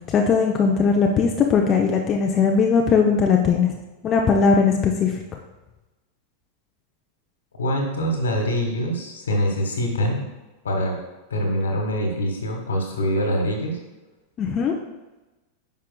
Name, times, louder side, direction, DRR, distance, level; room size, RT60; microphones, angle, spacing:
voice 1, 0.1-3.7 4.0-5.1 14.4-14.7, left 5 dB, 30° left, 1 dB, 0.6 m, -19 dB
voice 2, 7.6-10.2 10.6-11.0 11.3-13.8, equal, 70° left, 2 dB, 1.4 m, -24 dB
9.5 x 5.6 x 2.3 m, 1.1 s
figure-of-eight pair, 90°, 0 cm